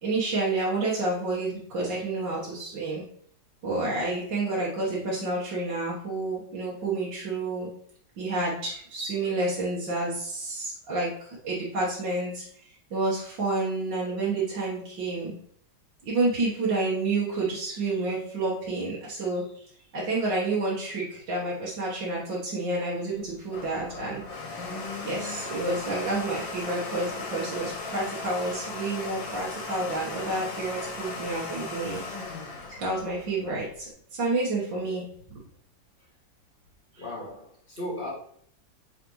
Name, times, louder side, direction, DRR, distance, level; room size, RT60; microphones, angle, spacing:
voice 1, 0.0-3.0 3.6-7.7 8.2-12.5 12.9-15.3 16.0-19.4 19.9-24.2 25.0-32.0 32.8-35.1 36.9-37.0, right 2 dB, 80° right, -5 dB, 2.1 m, -29 dB
Domestic sounds home sounds, 23.2-33.9, left 3 dB, 90° left, 2.0 m, -37 dB
voice 2, 37.0-38.1, left 1 dB, 30° left, -4 dB, 1.8 m, -36 dB
7.9 x 4.2 x 3.1 m, 0.62 s
omnidirectional pair, 2.0 m